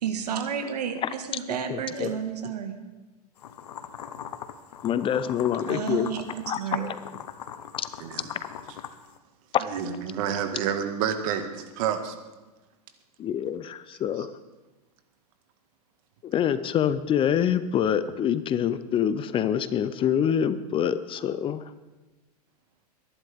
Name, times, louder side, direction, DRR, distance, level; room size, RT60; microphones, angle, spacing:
voice 1, 0.0-2.8 5.7-6.9, right 7 dB, 80° right, 7 dB, 1.7 m, -31 dB
voice 2, 1.7-2.1 4.8-6.1 6.4-6.9 7.8-7.9 9.5-9.6 13.2-14.3 16.2-21.6, left 9 dB, 25° left, 14 dB, 0.6 m, -26 dB
sound 1, 3.4-9.2, left 8 dB, 80° left, 1.0 m, -41 dB
voice 3, 8.0-8.3 9.6-12.2 14.2-14.3, right 8 dB, 55° right, 7 dB, 1.8 m, -29 dB
22.0 x 11.0 x 3.6 m, 1.1 s
hypercardioid pair, 115°, 20 cm